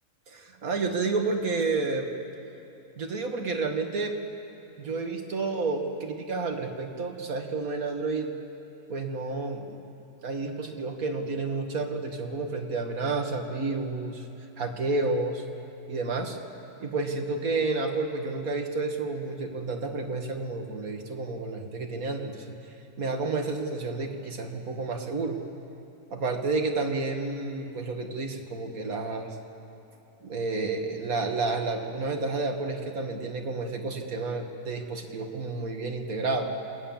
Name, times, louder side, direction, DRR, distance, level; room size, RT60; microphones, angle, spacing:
voice 1, 0.3-2.1 3.0-4.1 4.8-8.3 8.9-9.8 10.2-14.3 14.6-15.4 15.9-16.4 16.8-22.6 23.0-25.4 26.1-29.3 30.2-36.5, right 3 dB, 65° right, 3 dB, 2.2 m, -30 dB
27.5 x 19.0 x 7.3 m, 2.9 s
omnidirectional pair, 1.7 m